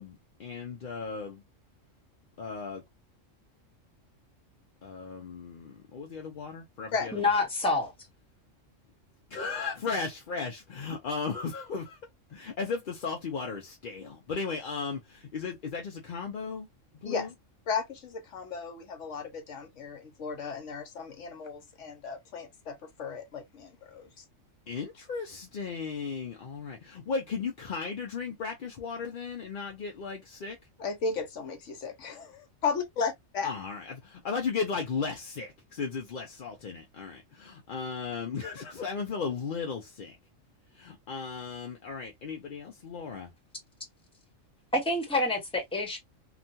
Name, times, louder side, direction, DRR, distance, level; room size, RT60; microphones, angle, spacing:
voice 1, 0.0-1.4 2.4-2.8 4.8-7.3 9.3-12.0 12.3-16.7 17.0-17.3 24.7-30.6 33.4-40.2 40.7-43.3, left 5 dB, 50° left, 0.6 m, -36 dB
voice 2, 7.1-7.9 44.7-46.0, left 2 dB, 5° left, 1.0 m, -27 dB
voice 3, 17.7-24.2 30.8-33.5, left 5 dB, 70° left, 1.1 m, -35 dB
3.0 x 2.3 x 2.6 m
omnidirectional pair, 1.3 m